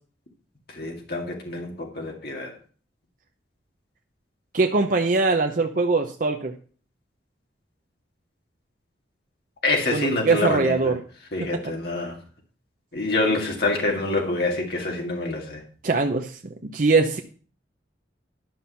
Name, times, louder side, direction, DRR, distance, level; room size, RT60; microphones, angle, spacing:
voice 1, 0.7-2.5 9.6-10.9 11.3-12.2 12.9-15.6, left 2 dB, 60° left, 0 dB, 2.0 m, -26 dB
voice 2, 4.5-6.5 9.9-11.0 11.5-11.6 15.8-17.2, right 3 dB, 50° right, 4 dB, 0.7 m, -22 dB
11.5 x 6.0 x 5.6 m, 0.42 s
head